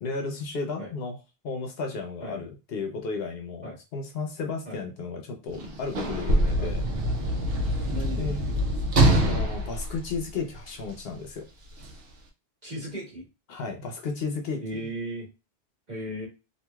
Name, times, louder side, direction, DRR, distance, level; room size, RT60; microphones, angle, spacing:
voice 1, 0.0-1.2 1.4-6.9 8.2-8.4 9.2-11.4 13.5-14.8, left 4 dB, 70° left, 4 dB, 0.8 m, -33 dB
Sliding door / Slam, 5.5-10.9 11.8-11.9, right 1 dB, 70° right, 0.9 m, -25 dB
voice 2, 7.8-8.7 12.6-13.2 14.6-15.3 15.9-16.3, right 1 dB, 45° right, -4 dB, 1.5 m, -36 dB
3.0 x 2.5 x 2.3 m, 0.28 s
omnidirectional pair, 1.1 m